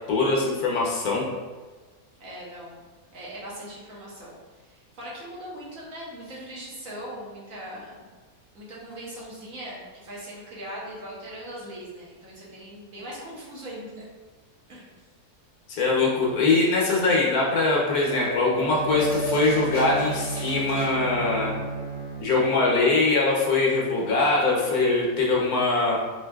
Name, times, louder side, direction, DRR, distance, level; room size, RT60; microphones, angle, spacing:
voice 1, 0.1-1.3 15.7-21.6 22.2-26.0, left 3 dB, 70° left, -3 dB, 1.2 m, -22 dB
voice 2, 2.2-2.8 3.1-8.1 8.5-14.0 14.7-14.9, right 1 dB, 65° right, -6 dB, 1.3 m, -40 dB
sound 1, 17.9-20.9, equal, 10° right, 0.9 m, -34 dB
Bowed string instrument, 18.5-22.7, right 3 dB, 80° right, 1.9 m, -34 dB
4.5 x 2.6 x 2.3 m, 1.3 s
omnidirectional pair, 1.7 m